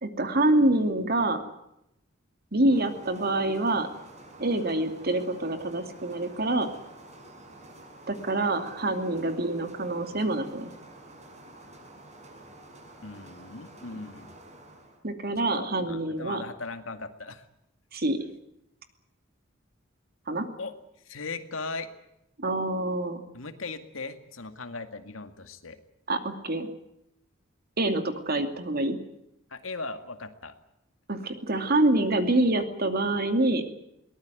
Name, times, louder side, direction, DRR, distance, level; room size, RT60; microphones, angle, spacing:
voice 1, 0.0-1.4 2.5-3.9 4.4-6.7 8.1-10.7 15.0-16.4 17.9-18.3 20.3-20.5 22.4-23.2 26.1-26.7 27.8-29.0 31.1-33.7, right 2 dB, 50° right, 7 dB, 2.7 m, -26 dB
sound 1, 2.7-15.0, right 1 dB, 35° right, 6.3 m, -49 dB
voice 2, 13.0-14.3 15.5-17.4 20.6-20.7 21.1-21.9 23.3-25.8 29.5-30.5, left 3 dB, 90° left, 8 dB, 2.1 m, -38 dB
22.0 x 19.0 x 9.3 m, 0.82 s
head